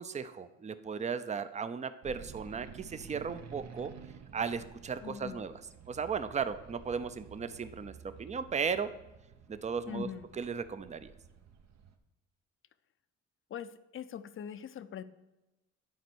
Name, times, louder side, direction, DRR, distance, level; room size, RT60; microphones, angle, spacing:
voice 1, 0.0-3.9 4.3-5.5 5.9-8.9 9.5-10.1 10.4-11.1, right 6 dB, 25° right, 12 dB, 0.5 m, -36 dB
sound 1, 2.0-12.0, right 6 dB, 60° right, 0.9 m, -52 dB
voice 2, 5.0-5.4 9.9-10.3 13.5-15.0, left 8 dB, 45° left, 13 dB, 0.5 m, -42 dB
9.4 x 4.4 x 6.1 m, 1.0 s
cardioid pair, 90°, 30 cm